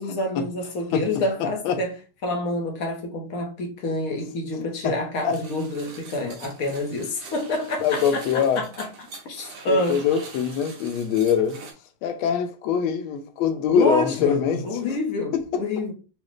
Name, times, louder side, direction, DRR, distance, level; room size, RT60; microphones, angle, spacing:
voice 1, 0.0-1.9 2.2-8.9 9.2-10.0 13.7-15.9, left 2 dB, 60° left, 0.9 m, -28 dB
voice 2, 1.4-1.8 4.8-4.9 5.2-5.4 7.8-8.6 9.7-11.6 12.0-15.0 15.3-15.4, left 7 dB, 80° left, 1.4 m, -23 dB
sound 1, 5.3-11.7, right 4 dB, 90° right, 1.8 m, -43 dB
5.0 x 2.0 x 3.0 m
omnidirectional pair, 2.4 m